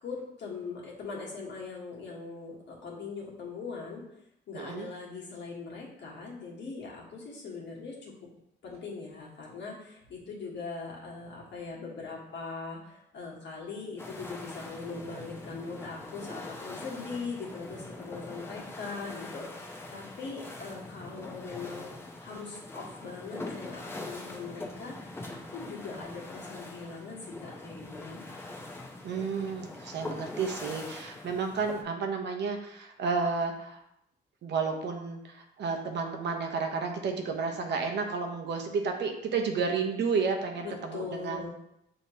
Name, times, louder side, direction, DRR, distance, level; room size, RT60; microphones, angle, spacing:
voice 1, 0.0-4.0 4.5-8.1 8.6-21.9 22.2-28.3 40.6-41.5, left 4 dB, 65° left, -3 dB, 1.4 m, -41 dB
voice 2, 4.5-4.9 29.0-33.8 34.4-41.5, right 5 dB, 60° right, 3 dB, 0.8 m, -31 dB
sound 1, 14.0-31.8, left 2 dB, 10° left, 0.7 m, -43 dB
6.4 x 2.9 x 2.8 m, 0.80 s
cardioid pair, 90°, 20 cm